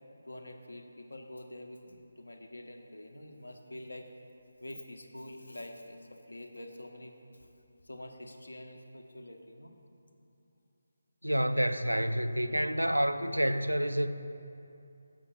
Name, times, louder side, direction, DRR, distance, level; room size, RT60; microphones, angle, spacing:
voice 1, 0.3-4.1 4.6-7.5 7.8-9.7, left 1 dB, 70° left, 0.9 m, -46 dB
voice 2, 11.2-14.1, equal, 85° right, 0.4 m, -28 dB
6.8 x 6.5 x 5.9 m
figure-of-eight pair, 155°, 0 cm